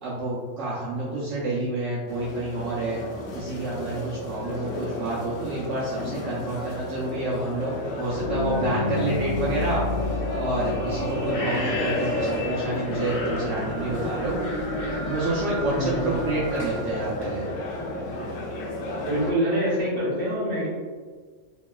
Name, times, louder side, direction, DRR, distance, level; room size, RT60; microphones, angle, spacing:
voice 1, 0.0-3.0 3.3-9.8 10.4-14.4 15.1-17.4, right 2 dB, 75° right, -7 dB, 0.9 m, -29 dB
sound 1, 2.1-19.3, left 1 dB, 75° left, 0.9 m, -33 dB
sound 2, 8.0-17.8, left 2 dB, 55° left, 0.4 m, -30 dB
voice 2, 15.7-16.3 19.0-20.7, equal, 50° right, -6 dB, 1.2 m, -26 dB
3.0 x 2.8 x 2.3 m, 1.5 s
omnidirectional pair, 1.3 m